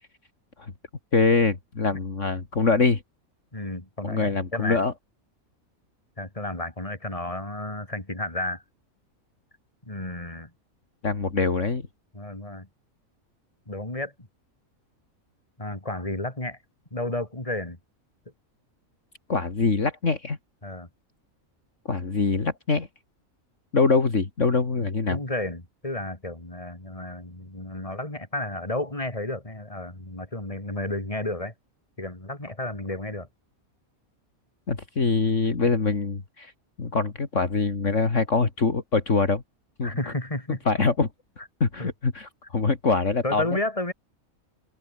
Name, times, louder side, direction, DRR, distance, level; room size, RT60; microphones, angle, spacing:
voice 1, 1.1-3.0 4.0-4.9 11.0-11.9 19.3-20.4 21.9-22.9 23.7-25.2 34.7-36.5 36.8-39.4 39.8-39.9 40.7-41.1 41.6-43.4, left 4 dB, 55° left, 2.8 m, -24 dB
voice 2, 3.5-4.8 6.2-8.6 9.8-10.5 12.1-12.7 13.7-14.1 15.6-16.6 16.9-17.8 20.6-20.9 25.1-31.5 32.0-33.3 39.8-40.6 41.8-41.9 43.2-43.9, left 1 dB, 25° left, 4.4 m, -32 dB
open air
omnidirectional pair, 1.5 m